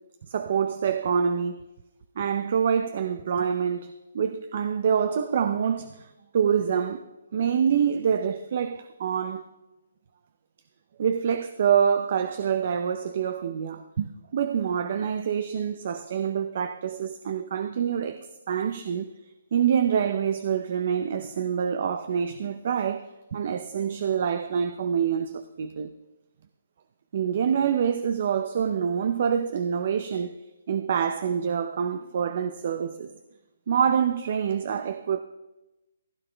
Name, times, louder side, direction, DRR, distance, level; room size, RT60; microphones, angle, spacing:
voice 1, 0.3-1.6 2.2-6.1 6.3-7.0 7.3-9.4 11.0-19.1 19.5-25.9 27.1-30.4 30.7-33.1 33.7-35.2, right 7 dB, 45° right, 0.6 m, -26 dB
16.0 x 9.3 x 3.4 m
hypercardioid pair, 160°, 0 cm